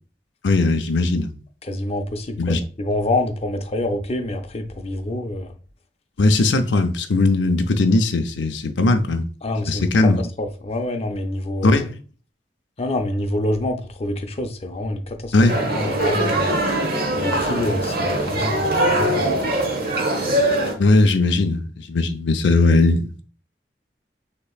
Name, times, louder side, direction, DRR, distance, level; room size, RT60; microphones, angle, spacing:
voice 1, 0.4-1.3 2.4-2.6 6.2-9.3 9.7-10.2 11.6-11.9 15.3-15.7 20.8-23.2, left 2 dB, 90° left, 0.6 m, -18 dB
voice 2, 1.7-5.5 9.4-9.8 10.4-11.8 12.8-15.3 15.7-16.6 17.1-19.2, left 1 dB, 35° left, 0.6 m, -26 dB
sound 1, 15.5-20.7, right 1 dB, 60° right, 1.0 m, -22 dB
6.6 x 2.9 x 2.3 m
head